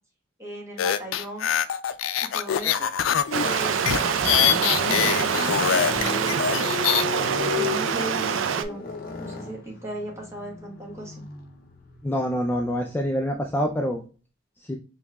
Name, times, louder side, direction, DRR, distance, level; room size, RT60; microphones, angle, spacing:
voice 1, 0.4-1.5 2.3-2.9 3.4-6.6 7.5-8.8 9.2-11.2, right 1 dB, 15° right, -2 dB, 1.2 m, -37 dB
sound 1, 0.8-7.0, left 9 dB, 85° left, 0.4 m, -24 dB
Stream, 3.3-8.6, right 7 dB, 75° right, 0.4 m, -25 dB
sound 2, 3.5-13.7, left 4 dB, 50° left, 0.7 m, -35 dB
voice 2, 12.0-14.0 14.6-14.8, equal, 10° left, 2 dB, 0.3 m, -26 dB
5.3 x 3.1 x 2.3 m, 0.37 s
head